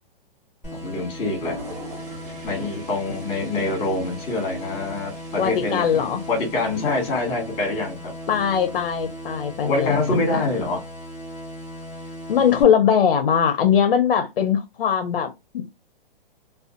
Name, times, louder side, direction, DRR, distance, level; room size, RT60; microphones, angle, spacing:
sound 1, 0.6-12.6, equal, 5° right, 1.4 m, -37 dB
voice 1, 0.8-1.5 2.4-8.1 9.6-10.8, left 2 dB, 20° left, 1.3 m, -25 dB
Toilet flush, 1.2-9.1, right 1 dB, 50° right, 1.6 m, -43 dB
voice 2, 5.4-6.2 8.3-10.5 12.3-15.6, left 8 dB, 65° left, 0.6 m, -21 dB
2.5 x 2.3 x 2.4 m
hypercardioid pair, 155°, 29 cm